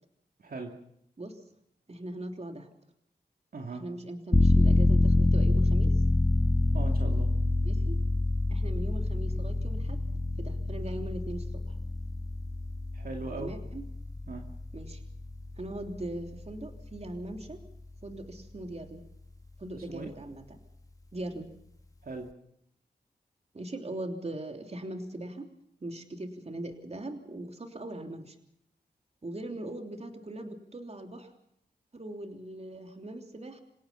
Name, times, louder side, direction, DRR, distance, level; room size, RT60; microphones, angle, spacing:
voice 1, 0.4-0.7 3.5-3.8 6.7-7.3 12.9-13.5 14.3-14.4 19.8-20.1 22.0-22.3, right 3 dB, 60° right, 2 dB, 2.6 m, -39 dB
voice 2, 1.9-2.7 3.8-5.9 7.6-8.0 8.5-10.0 10.4-11.8 13.4-13.8 14.7-15.0 15.6-17.6 18.0-19.0 19.6-20.4 21.1-21.5 23.5-25.5 25.8-28.4 29.2-31.3 31.9-33.6, right 1 dB, 40° right, 5 dB, 3.2 m, -40 dB
sound 1, 4.3-16.8 17.2-17.3, left 2 dB, 20° left, 1.5 m, -26 dB
27.5 x 17.5 x 5.7 m, 0.73 s
cardioid pair, 70°, 17 cm